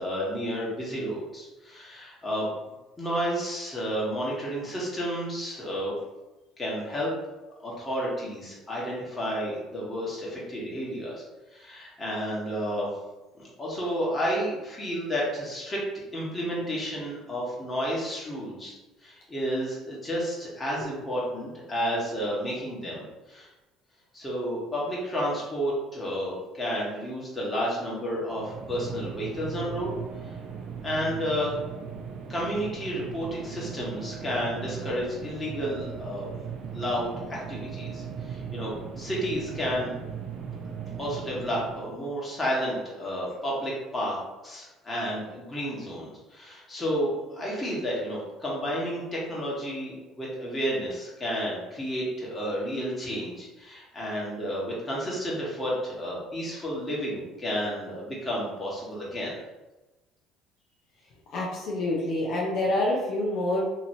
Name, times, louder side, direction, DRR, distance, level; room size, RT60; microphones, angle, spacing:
voice 1, 0.0-2.5 3.0-6.0 6.6-7.1 7.6-11.2 11.5-12.9 13.3-15.8 16.1-18.7 19.0-23.5 24.1-29.9 30.2-30.3 30.8-31.5 32.3-36.3 36.7-40.0 40.6-44.2 44.4-59.4, equal, 20° left, -5 dB, 1.2 m, -31 dB
sound 1, 28.2-42.0, right 6 dB, 65° right, 0.4 m, -38 dB
voice 2, 61.3-63.7, left 1 dB, 65° left, -3 dB, 0.6 m, -27 dB
2.9 x 2.7 x 2.7 m, 1.1 s
supercardioid pair, 100°, 0 cm